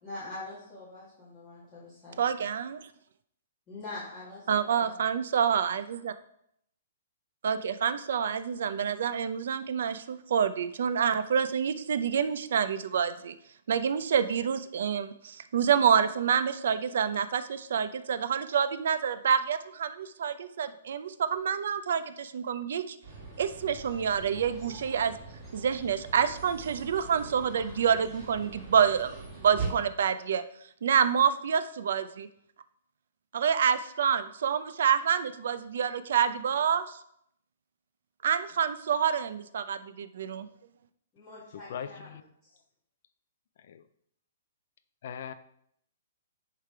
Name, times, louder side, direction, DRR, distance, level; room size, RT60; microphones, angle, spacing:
voice 1, 0.0-2.3 3.7-4.9 41.1-42.5, left 2 dB, 15° left, 1.8 m, -44 dB
voice 2, 2.2-2.8 4.5-6.1 7.4-13.3 13.7-23.0 23.4-25.2 25.5-30.4 30.8-32.3 33.3-37.0 38.2-40.5, right 7 dB, 60° right, 0.5 m, -27 dB
sound 1, 23.0-29.7, right 4 dB, 10° right, 2.0 m, -42 dB
voice 3, 41.7-42.2 43.7-43.8 45.0-45.3, left 8 dB, 50° left, 0.4 m, -39 dB
9.9 x 3.4 x 4.6 m
hypercardioid pair, 170°, 0 cm